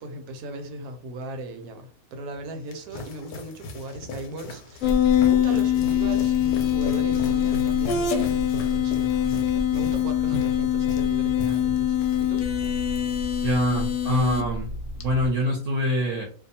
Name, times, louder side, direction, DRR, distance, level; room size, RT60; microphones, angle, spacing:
voice 1, 0.0-12.5, right 2 dB, 85° right, 1.1 m, -38 dB
sound 1, 2.3-12.3 12.6-13.0, left 3 dB, 90° left, 1.1 m, -38 dB
sound 2, 4.8-15.3, left 9 dB, 65° left, 0.9 m, -23 dB
voice 2, 13.4-14.7 15.0-16.3, equal, 65° right, 0.9 m, -24 dB
2.6 x 2.2 x 2.7 m
omnidirectional pair, 1.6 m